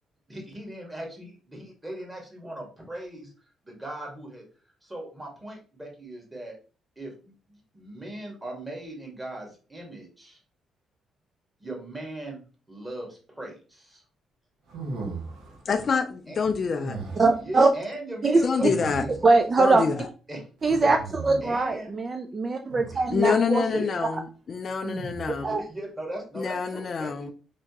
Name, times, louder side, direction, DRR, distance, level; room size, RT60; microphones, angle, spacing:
voice 1, 0.3-3.3 3.6-4.4 4.8-6.6 7.0-7.3 7.7-10.4 11.6-12.4 12.7-13.5 16.3-16.4 17.4-19.1 20.3-20.9 21.4-21.9 22.9-23.3 23.7-23.9 25.4-27.3, right 1 dB, 15° right, 1.5 m, -38 dB
sound 1, 14.7-15.6 16.7-17.4 18.6-19.4 20.6-21.6 22.7-23.2 24.8-25.5, right 3 dB, 85° right, 1.0 m, -37 dB
voice 2, 15.7-17.0 18.4-19.1 19.6-20.1 23.1-25.6 26.3-27.3, left 5 dB, 45° left, 0.3 m, -26 dB
voice 3, 17.2-17.7 18.2-18.3 18.6-18.7 19.2-19.8 20.6-21.0 21.2-23.6 25.2-25.6, right 3 dB, 35° right, 0.3 m, -22 dB
3.3 x 2.8 x 2.8 m
cardioid pair, 90°, 0 cm